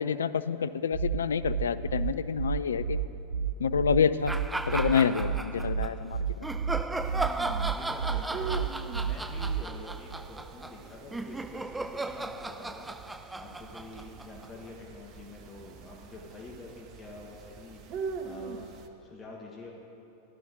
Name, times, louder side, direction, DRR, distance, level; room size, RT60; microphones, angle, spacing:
voice 1, 0.0-3.0 3.6-4.4 4.7-6.2, left 7 dB, 65° left, 14 dB, 0.3 m, -27 dB
sound 1, 0.9-9.9, right 7 dB, 80° right, 0.6 m, -31 dB
sound 2, 4.3-5.9 6.4-14.7, right 2 dB, 5° right, 0.4 m, -36 dB
sound 3, 7.0-18.9, right 5 dB, 40° right, 0.8 m, -44 dB
voice 2, 7.1-12.9 13.3-19.8, left 2 dB, 20° left, -2 dB, 1.4 m, -47 dB
14.5 x 11.0 x 4.0 m, 2.8 s
figure-of-eight pair, 90°, 0 cm